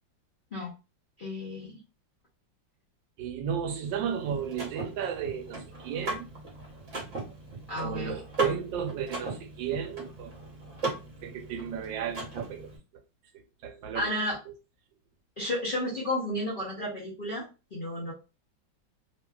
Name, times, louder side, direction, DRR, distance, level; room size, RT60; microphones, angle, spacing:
voice 1, 1.2-1.8 7.7-8.2 13.9-14.4 15.4-18.1, left 1 dB, 65° left, 0.5 m, -32 dB
voice 2, 3.2-6.3 7.8-10.3 11.2-12.7 13.3-14.1 14.5-14.6, right 8 dB, 85° right, 1.3 m, -34 dB
Car / Mechanisms, 3.8-12.8, right 2 dB, 50° right, 1.1 m, -38 dB
2.9 x 2.5 x 2.2 m
omnidirectional pair, 2.0 m